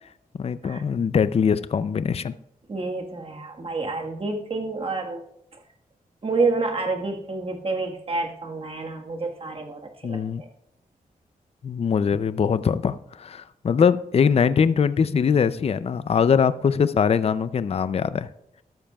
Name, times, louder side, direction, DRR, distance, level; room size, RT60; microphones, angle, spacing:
voice 1, 0.4-2.3 10.0-10.4 11.6-18.3, left 6 dB, 40° left, 14 dB, 0.4 m, -22 dB
voice 2, 2.7-5.2 6.2-10.5, right 3 dB, 40° right, 2 dB, 1.5 m, -28 dB
13.5 x 12.5 x 2.3 m, 0.80 s
wide cardioid pair, 145°, 15 cm